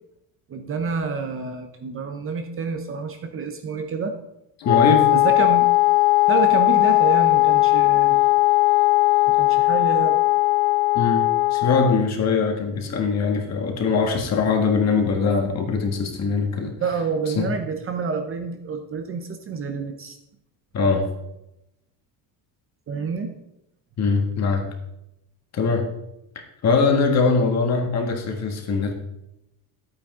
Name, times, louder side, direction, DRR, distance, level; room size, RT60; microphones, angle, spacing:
voice 1, 0.5-4.2 5.1-5.7 6.3-8.2 9.3-10.2 16.8-20.2 22.9-23.3, right 5 dB, 30° right, 6 dB, 0.7 m, -28 dB
Wind instrument woodwind instrument, 4.6-12.1, left 19 dB, 75° left, 0.5 m, -18 dB
voice 2, 4.6-5.1 10.9-11.2 11.5-16.7 17.3-17.5 20.7-21.1 24.0-24.6 25.5-25.9 26.6-28.9, left 4 dB, 40° left, 3 dB, 1.6 m, -21 dB
11.5 x 8.8 x 3.7 m, 0.86 s
cardioid pair, 165°, 42 cm